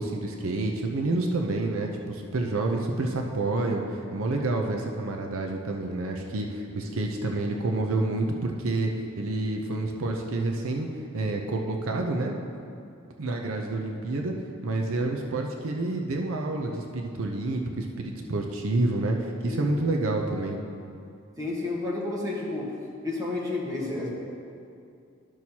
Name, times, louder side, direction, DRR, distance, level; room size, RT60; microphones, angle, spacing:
voice 1, 0.0-8.9 9.2-10.9 11.1-12.3 13.2-14.3 14.6-20.6, right 2 dB, 80° right, 2 dB, 0.6 m, -28 dB
voice 2, 21.4-22.7 23.0-24.1, left 2 dB, 15° right, -5 dB, 1.3 m, -31 dB
12.0 x 6.1 x 2.9 m, 2.5 s
head